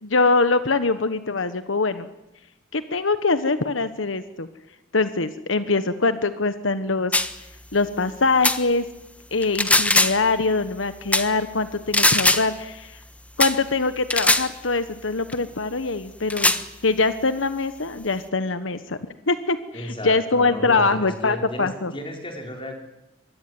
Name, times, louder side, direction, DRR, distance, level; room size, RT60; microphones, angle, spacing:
voice 1, 0.0-2.1 2.7-4.5 4.9-7.1 7.7-8.8 9.3-12.9 13.4-16.6 16.8-19.0 19.3-21.9, left 3 dB, 85° left, 11 dB, 1.4 m, -23 dB
sound 1, 7.1-7.3 8.4-8.6 9.4-10.3 11.1-11.3 11.9-12.5 13.4-13.6 14.1-14.5 15.3-15.4 16.3-16.6, left 2 dB, 10° left, 1.3 m, -19 dB
voice 2, 19.7-22.7, equal, 30° left, 3 dB, 5.1 m, -33 dB
25.0 x 22.5 x 9.6 m, 0.96 s
head